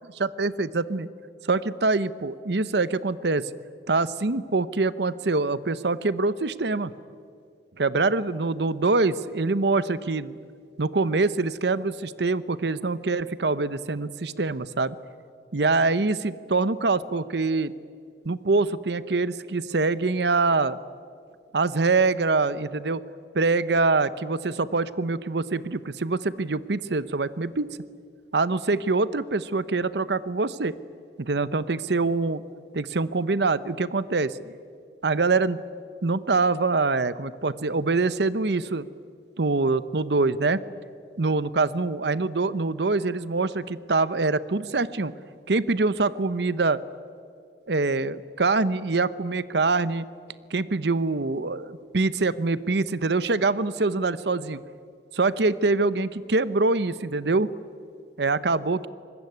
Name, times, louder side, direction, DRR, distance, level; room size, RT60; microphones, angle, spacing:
voice 1, 0.2-1.1 1.4-3.5 3.9-6.9 7.8-10.4 10.8-15.0 15.5-17.7 18.2-20.8 21.5-23.0 23.3-27.8 28.3-30.8 31.2-32.4 32.7-34.4 35.0-35.6 36.0-38.9 39.4-40.6 41.2-45.1 45.5-46.8 47.7-50.1 50.5-54.6 55.1-57.5 58.2-58.9, right 3 dB, 75° right, 16 dB, 0.8 m, -24 dB
25.0 x 20.5 x 9.5 m, 2.2 s
head